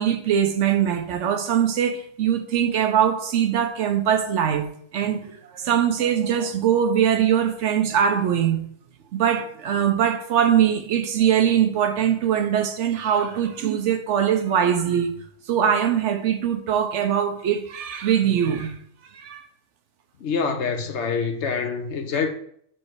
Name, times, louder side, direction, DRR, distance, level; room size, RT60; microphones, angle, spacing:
voice 1, 0.0-4.7 4.9-8.6 9.1-15.2 15.5-18.8 19.1-19.4, right 9 dB, 80° right, 1.0 m, -22 dB
voice 2, 20.2-22.3, left 5 dB, 70° left, 1.1 m, -25 dB
7.5 x 3.2 x 4.7 m
omnidirectional pair, 1.2 m